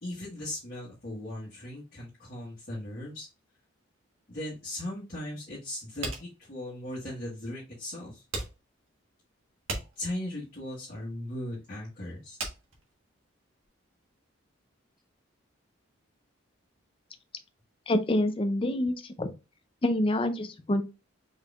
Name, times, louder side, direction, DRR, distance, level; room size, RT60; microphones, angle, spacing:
voice 1, 0.0-3.3 4.3-8.2 9.9-12.4, left 1 dB, 45° left, 1.5 m, -38 dB
sound 1, 6.0-13.7, right 3 dB, 75° right, 1.4 m, -39 dB
voice 2, 17.9-19.3 19.8-20.8, left 1 dB, 25° left, 0.5 m, -27 dB
4.7 x 3.7 x 2.4 m
head